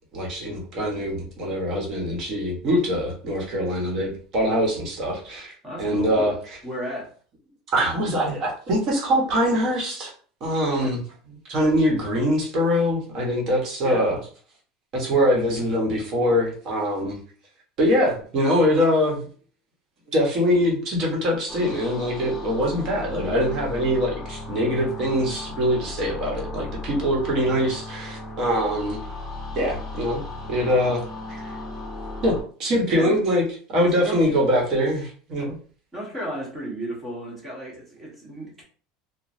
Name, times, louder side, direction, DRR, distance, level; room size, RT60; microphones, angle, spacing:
voice 1, 0.1-5.5 5.8-6.6 7.7-10.1 10.4-11.0 11.5-14.2 14.9-17.2 17.8-19.3 20.1-29.0 29.5-31.0 31.3-31.4 32.2-33.4 33.7-35.6, equal, 45° right, -1 dB, 1.1 m, -23 dB
voice 2, 5.6-6.3 6.6-7.1 10.7-11.0 13.8-14.1 32.9-33.2 33.8-34.3 35.9-38.6, right 1 dB, 20° right, -3 dB, 1.3 m, -34 dB
sound 1, 21.5-32.4, left 2 dB, 25° left, 1.4 m, -36 dB
3.0 x 2.2 x 2.6 m, 0.43 s
supercardioid pair, 135°, 0 cm